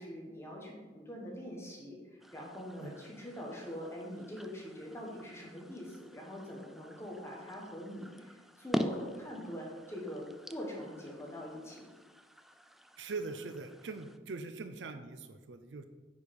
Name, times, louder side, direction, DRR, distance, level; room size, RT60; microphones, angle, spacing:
voice 1, 0.0-2.0 2.3-11.9, equal, 15° left, -2 dB, 1.5 m, -43 dB
sound 1, 2.2-14.2, equal, ahead, 0.3 m, -44 dB
voice 2, 13.0-15.8, right 3 dB, 85° right, 9 dB, 0.6 m, -42 dB
9.5 x 4.9 x 5.4 m, 1.3 s
head